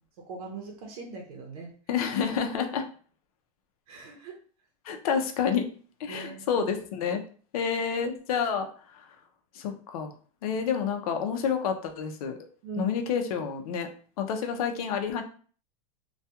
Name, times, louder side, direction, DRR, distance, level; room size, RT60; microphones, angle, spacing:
voice 1, 0.3-1.7 3.9-4.4 6.1-6.6 10.5-10.6 12.6-13.0, right 5 dB, 80° right, 0 dB, 0.7 m, -40 dB
voice 2, 1.9-2.9 4.8-5.7 6.0-7.2 7.5-8.7 8.9-9.1 9.5-10.1 10.4-12.4 12.8-13.9 14.2-15.2, left 7 dB, 85° left, 5 dB, 0.6 m, -29 dB
2.3 x 2.3 x 2.8 m, 0.43 s
supercardioid pair, 165°, 18 cm